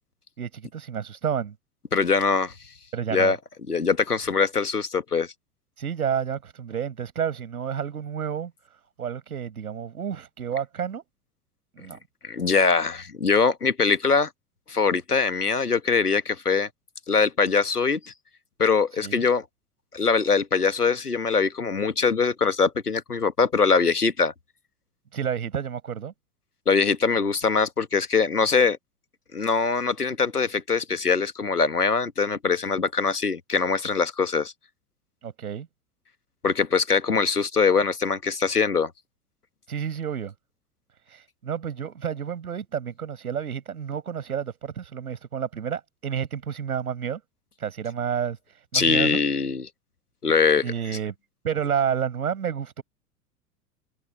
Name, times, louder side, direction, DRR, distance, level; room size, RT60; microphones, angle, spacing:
voice 1, 0.4-1.5 2.9-3.3 5.8-8.5 9.0-11.0 11.8-12.0 19.0-19.2 25.1-26.1 35.2-35.7 39.7-40.3 41.1-47.2 47.6-48.4 48.7-49.2 50.6-51.1 51.4-52.8, right 8 dB, 70° right, 7.2 m, -30 dB
voice 2, 1.9-2.5 3.1-3.4 3.7-5.3 12.2-14.3 14.7-16.7 17.1-18.1 18.6-19.4 19.9-24.3 26.7-28.8 29.3-34.5 36.4-38.9 48.7-49.7 50.2-51.0, left 5 dB, 85° left, 1.6 m, -22 dB
open air
figure-of-eight pair, 90°, 45 cm